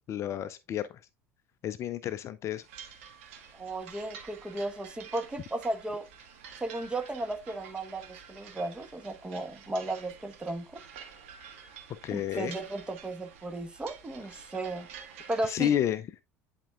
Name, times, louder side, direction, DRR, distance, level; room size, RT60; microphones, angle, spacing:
voice 1, 0.1-0.9 1.6-2.6 12.0-12.5 15.5-16.0, left 10 dB, 40° left, 0.4 m, -30 dB
sound 1, 2.6-15.5, right 7 dB, 65° right, 1.5 m, -49 dB
voice 2, 3.5-6.1 6.6-10.8 12.1-14.9 15.3-15.8, right 2 dB, 15° right, 1.2 m, -35 dB
10.0 x 4.4 x 2.4 m
figure-of-eight pair, 70°, 7 cm